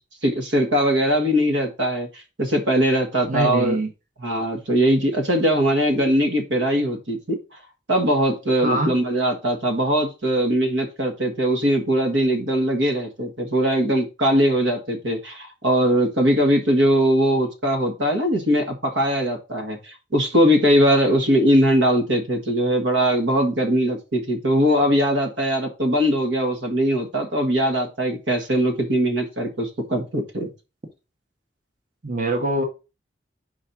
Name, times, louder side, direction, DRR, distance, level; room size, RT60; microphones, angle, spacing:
voice 1, 0.2-3.8 4.2-7.4 7.9-30.5, equal, 85° right, 1.6 m, -21 dB
voice 2, 3.2-3.9 8.6-8.9 32.0-32.6, right 2 dB, 45° right, 1.2 m, -23 dB
4.8 x 4.2 x 5.9 m
head